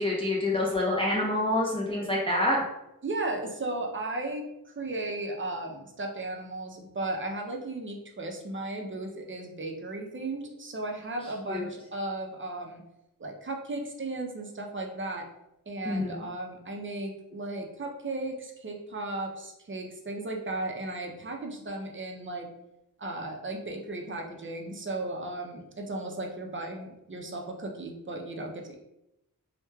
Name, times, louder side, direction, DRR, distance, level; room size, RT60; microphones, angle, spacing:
voice 1, 0.0-2.6 11.5-11.7 15.9-16.2, left 1 dB, 15° left, -4 dB, 0.5 m, -27 dB
voice 2, 3.0-12.8 13.2-15.3 15.7-22.5 23.0-28.8, right 2 dB, 35° right, 1 dB, 0.5 m, -35 dB
3.0 x 2.1 x 2.2 m, 0.87 s
wide cardioid pair, 65°, 35 cm